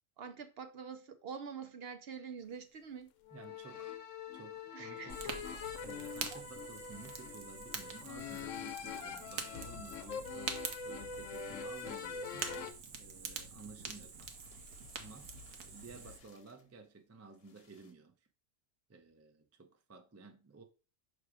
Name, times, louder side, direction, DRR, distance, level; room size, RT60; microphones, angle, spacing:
voice 1, 0.2-3.1 4.7-5.3 6.3-6.4, right 6 dB, 60° right, 0.8 m, -46 dB
sound 1, 3.2-12.7, left 6 dB, 75° left, 1.0 m, -44 dB
voice 2, 3.3-4.0 4.3-5.5 5.8-10.6 10.8-12.5 13.0-14.3 15.0-15.3 15.6-18.1 18.9-20.6, right 4 dB, 20° right, 0.4 m, -54 dB
Fire, 5.1-16.2, right 5 dB, 90° right, 1.3 m, -45 dB
sound 2, 9.5-11.7 12.0-16.7 17.3-17.9, left 6 dB, 55° left, 1.1 m, -59 dB
5.9 x 3.4 x 4.8 m
omnidirectional pair, 1.3 m